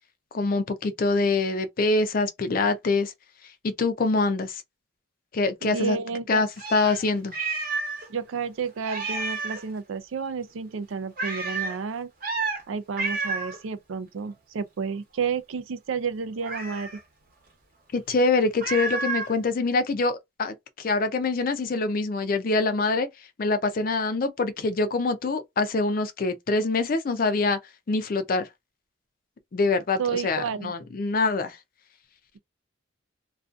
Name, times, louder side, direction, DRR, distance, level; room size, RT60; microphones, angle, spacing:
voice 1, 0.3-3.1 3.6-4.6 5.3-6.0 6.3-7.3 17.9-23.1 23.4-27.6 27.9-28.5 29.5-31.6, left 3 dB, 45° left, 0.4 m, -25 dB
voice 2, 5.6-6.4 8.1-12.1 12.7-16.9 30.0-30.7, right 5 dB, 80° right, 0.4 m, -31 dB
Meow, 6.6-8.1 8.4-8.5 8.8-9.7 11.2-11.8 12.2-12.6 13.0-13.6 16.4-17.0 18.6-19.3, right 3 dB, 45° right, 0.8 m, -30 dB
2.5 x 2.3 x 2.4 m
head